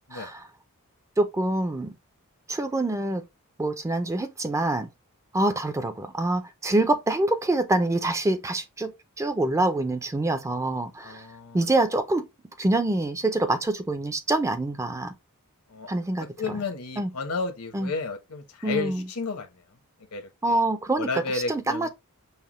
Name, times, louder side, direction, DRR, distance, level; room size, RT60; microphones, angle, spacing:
voice 1, 0.1-0.4 1.2-1.9 2.5-3.2 3.6-4.9 5.3-11.2 11.5-12.3 12.6-15.1 15.9-16.3 17.0-17.1 17.7-17.9 18.6-19.0 20.4-21.1 21.5-21.9, right 2 dB, 15° right, 0.4 m, -25 dB
voice 2, 11.0-11.7 15.7-15.9 16.4-19.5 20.1-20.6 21.0-21.9, left 4 dB, 80° left, 1.0 m, -32 dB
5.6 x 2.1 x 3.0 m
head